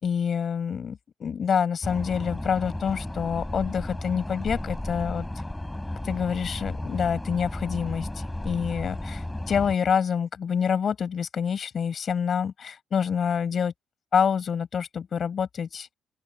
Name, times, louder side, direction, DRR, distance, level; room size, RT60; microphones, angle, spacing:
voice 1, 0.0-5.3 6.0-8.1 8.4-13.7 14.1-15.9, left 7 dB, 50° left, 7.3 m, -27 dB
sound 1, 1.8-9.7, left 1 dB, 10° left, 7.6 m, -34 dB
open air
cardioid pair, 90°, 0 cm